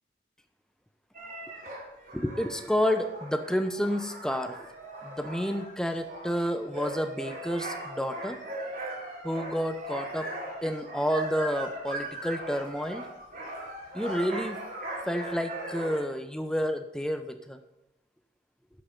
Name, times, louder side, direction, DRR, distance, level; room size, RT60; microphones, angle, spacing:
sound 1, 1.1-16.0, right 1 dB, 50° right, 3.7 m, -39 dB
voice 1, 2.1-4.6 5.0-8.4 9.2-10.3 10.6-13.1 13.9-14.6 15.1-17.6, equal, 5° left, 7 dB, 0.7 m, -30 dB
11.5 x 7.6 x 5.4 m, 0.92 s
head